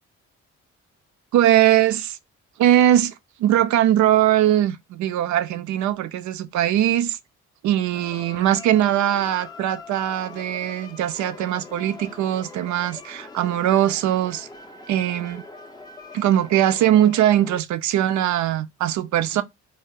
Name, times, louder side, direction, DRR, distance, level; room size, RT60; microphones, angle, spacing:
voice 1, 1.3-2.2 2.6-3.1 3.4-7.2 7.6-14.5 14.9-15.4 16.1-19.4, right 12 dB, 70° right, 0.5 m, -20 dB
sound 1, 7.9-17.6, left 4 dB, 15° left, 0.4 m, -42 dB
2.0 x 2.0 x 3.5 m
cardioid pair, 90°, 30 cm